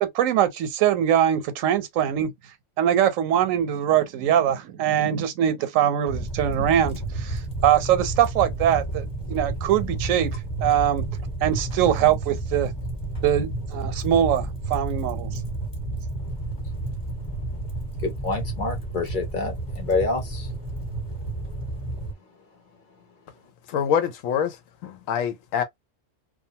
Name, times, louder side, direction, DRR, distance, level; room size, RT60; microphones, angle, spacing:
voice 1, 0.0-2.3 2.8-11.1 11.4-12.7 13.2-15.4, right 10 dB, 85° right, 1.0 m, -22 dB
sound 1, 6.1-22.1, right 2 dB, 20° left, 0.9 m, -31 dB
voice 2, 18.0-20.5, left 3 dB, 45° left, 0.7 m, -27 dB
voice 3, 23.7-24.6 24.8-25.6, left 8 dB, 90° left, 1.0 m, -25 dB
2.5 x 2.3 x 2.7 m
omnidirectional pair, 1.3 m